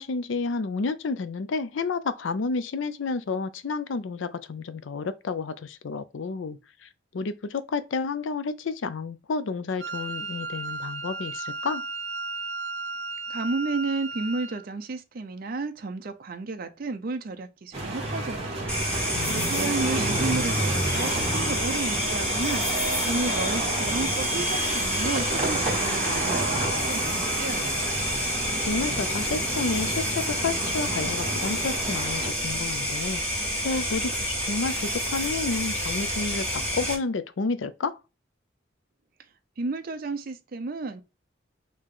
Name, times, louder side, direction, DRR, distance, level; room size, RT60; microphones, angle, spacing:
voice 1, 0.0-6.9 7.1-11.8 19.1-19.7 28.6-33.2 33.6-38.0, left 4 dB, 75° left, 0.5 m, -30 dB
Wind instrument woodwind instrument, 9.8-14.6, right 3 dB, 75° right, 1.0 m, -34 dB
voice 2, 13.3-18.8 19.2-27.8 39.6-41.0, right 3 dB, 50° right, 0.5 m, -32 dB
sound 1, 17.7-32.3, right 1 dB, 30° right, 1.4 m, -30 dB
sound 2, 18.7-36.9, equal, 5° left, 1.6 m, -29 dB
4.8 x 2.8 x 3.7 m
head